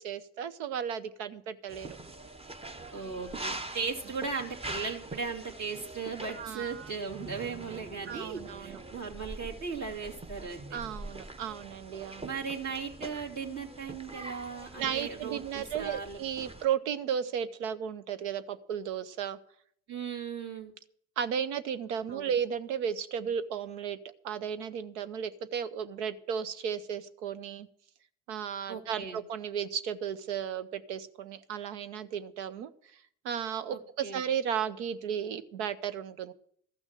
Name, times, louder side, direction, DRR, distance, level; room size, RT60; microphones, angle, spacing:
voice 1, 0.0-2.0 6.3-6.9 8.1-8.8 10.7-12.3 14.8-19.4 21.2-24.0 24.2-27.7 28.3-32.7 33.2-36.3, right 8 dB, 90° right, 13 dB, 0.8 m, -34 dB
sound 1, 1.7-16.6, right 2 dB, 15° right, 0.9 m, -44 dB
voice 2, 2.9-10.8 12.2-16.5 19.9-20.7 22.1-22.3 28.7-29.2 33.7-34.2, right 5 dB, 50° right, -1 dB, 2.7 m, -37 dB
13.5 x 6.2 x 7.6 m, 0.64 s
hypercardioid pair, 65°, 35 cm